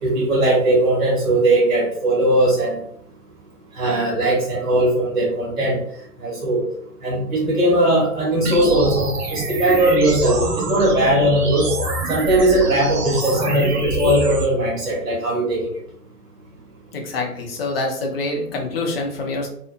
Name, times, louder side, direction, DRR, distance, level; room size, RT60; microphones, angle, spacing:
voice 1, 0.0-2.8 3.7-5.8 6.2-6.7 7.0-11.7 12.1-15.7, right 1 dB, 60° right, -5 dB, 1.3 m, -19 dB
sound 1, 8.4-14.4, right 2 dB, 80° right, 0.6 m, -26 dB
voice 2, 16.9-19.5, left 2 dB, 40° left, 1 dB, 0.7 m, -26 dB
2.8 x 2.0 x 2.4 m, 0.66 s
figure-of-eight pair, 120°, 46 cm